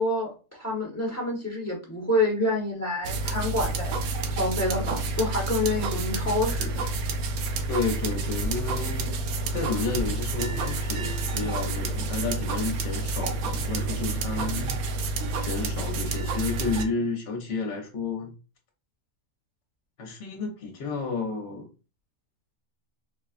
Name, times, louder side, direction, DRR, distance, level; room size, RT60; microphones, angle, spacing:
voice 1, 0.0-3.9 4.3-6.8, left 1 dB, 15° left, 0.9 m, -27 dB
sound 1, 3.0-16.8, right 3 dB, 85° right, 1.1 m, -29 dB
voice 2, 7.7-9.1 9.5-14.7 15.4-18.3 20.0-21.7, left 4 dB, 55° left, 1.0 m, -31 dB
4.3 x 2.3 x 2.4 m
omnidirectional pair, 1.5 m